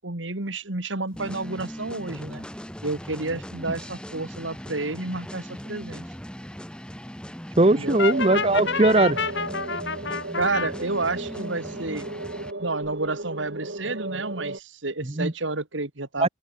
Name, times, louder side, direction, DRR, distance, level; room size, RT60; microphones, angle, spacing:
voice 1, 0.0-2.5 2.8-6.0 7.7-8.0 10.4-12.1 12.6-16.3, right 3 dB, 85° right, 2.7 m, -30 dB
sound 1, 1.1-12.5, equal, 5° left, 3.8 m, -39 dB
voice 2, 7.6-9.2 15.2-15.3 16.2-16.3, right 2 dB, 30° right, 0.8 m, -19 dB
Brass instrument, 8.0-10.7, left 5 dB, 70° left, 2.0 m, -28 dB
sound 2, 8.1-14.6, right 2 dB, 65° right, 2.2 m, -35 dB
open air
head